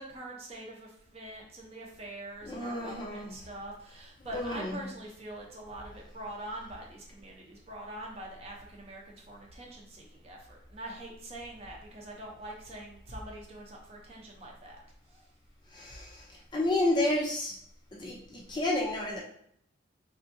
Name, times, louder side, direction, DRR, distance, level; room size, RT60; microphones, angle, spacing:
voice 1, 0.0-14.8 15.1-15.3, right 1 dB, 35° right, -1 dB, 0.7 m, -44 dB
voice 2, 2.4-3.3 4.3-4.8 15.7-17.6 17.9-19.2, left 1 dB, 25° left, -2 dB, 0.5 m, -31 dB
3.4 x 2.6 x 2.6 m, 0.69 s
head